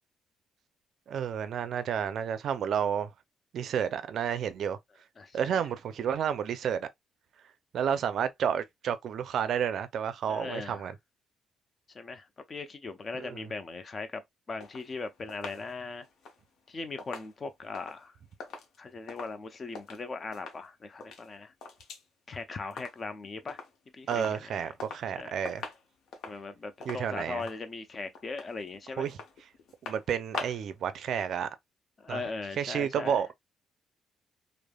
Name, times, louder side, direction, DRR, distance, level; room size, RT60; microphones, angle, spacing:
voice 1, 1.1-3.1 3.5-4.8 5.3-6.9 7.7-11.0 13.1-13.5 24.1-25.6 26.9-27.4 29.0-29.2 29.8-31.5 32.1-32.2 32.6-33.3, right 8 dB, 65° right, 0.4 m, -31 dB
voice 2, 10.2-10.9 11.9-14.2 14.5-16.1 16.7-18.2 18.8-21.5 22.3-23.6 23.9-24.7 25.2-25.7 26.2-29.1 32.0-33.2, left 3 dB, 40° left, 0.6 m, -39 dB
sound 1, 14.6-20.0 20.3-20.7 20.9-22.1 22.3-23.2 23.5-23.8 24.1-25.1 25.4-30.8 31.1-31.2, left 4 dB, 75° left, 0.8 m, -44 dB
3.2 x 2.0 x 2.2 m
cardioid pair, 90°, 0 cm